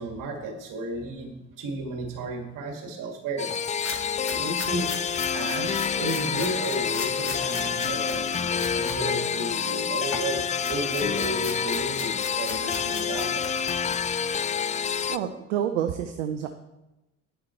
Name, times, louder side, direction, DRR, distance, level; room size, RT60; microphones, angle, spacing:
voice 1, 0.0-3.5 4.3-4.9 5.3-13.7, right 1 dB, 60° right, 3 dB, 2.1 m, -33 dB
sound 1, 3.4-15.2, left 7 dB, 20° left, 0.4 m, -28 dB
sound 2, 3.5-9.0 9.4-14.3, left 4 dB, 35° left, 1.8 m, -39 dB
voice 2, 15.1-16.5, right 10 dB, 75° right, 7 dB, 0.7 m, -28 dB
9.5 x 7.3 x 4.4 m, 0.97 s
hypercardioid pair, 50°, 37 cm